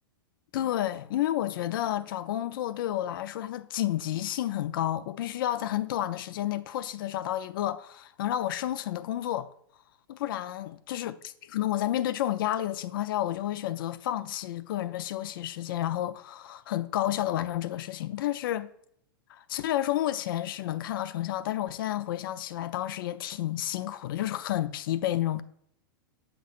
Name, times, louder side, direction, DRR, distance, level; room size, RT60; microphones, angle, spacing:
voice 1, 0.5-9.5 10.1-18.7 19.3-25.4, left 13 dB, 65° left, 0.5 m, -30 dB
8.3 x 6.0 x 2.4 m
hypercardioid pair, 125°, 12 cm